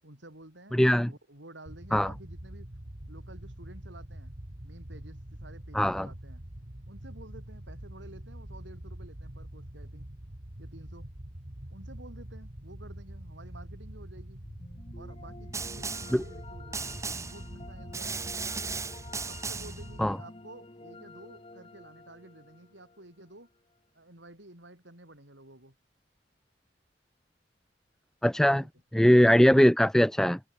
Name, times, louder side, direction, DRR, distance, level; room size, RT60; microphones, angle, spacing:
voice 1, 0.0-2.7 3.1-6.4 6.9-10.1 10.6-11.1 11.7-14.4 14.9-18.3 19.3-23.5 23.9-25.8 28.4-28.7, right 1 dB, 80° right, 7.3 m, -51 dB
voice 2, 0.7-1.1 1.9-2.1 5.7-6.1 16.1-16.2 20.0-20.2 28.2-28.6 28.9-30.4, equal, 5° left, 0.4 m, -21 dB
sound 1, 1.7-20.1, right 1 dB, 45° right, 2.2 m, -45 dB
sound 2, 14.4-23.6, left 2 dB, 30° left, 1.4 m, -50 dB
Snare drum, 15.5-16.2 16.7-17.4 17.9-19.8, right 4 dB, 15° right, 1.8 m, -36 dB
open air
head